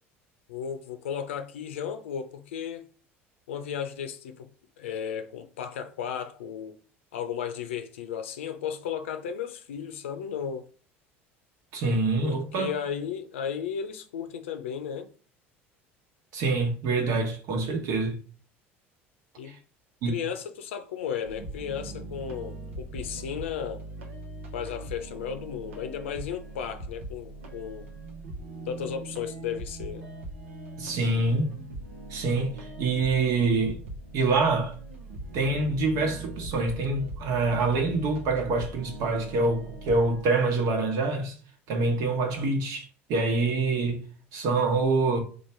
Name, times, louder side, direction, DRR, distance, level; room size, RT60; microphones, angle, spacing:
voice 1, 0.5-2.8 3.5-4.5 4.8-6.8 7.1-10.7 11.9-15.1 19.4-19.6 20.1-23.8 24.5-27.9 28.7-30.1, left 8 dB, 80° left, 0.6 m, -34 dB
voice 2, 11.7-12.7 16.3-18.2 19.4-19.6 20.0-20.2 30.8-31.6 32.1-33.8 34.1-34.7 35.3-41.3 41.7-44.0 44.3-45.2, right 3 dB, 60° right, 1.2 m, -26 dB
sound 1, 21.2-40.2, right 2 dB, 80° right, 0.8 m, -41 dB
3.1 x 2.4 x 4.4 m
hypercardioid pair, 70°, 7 cm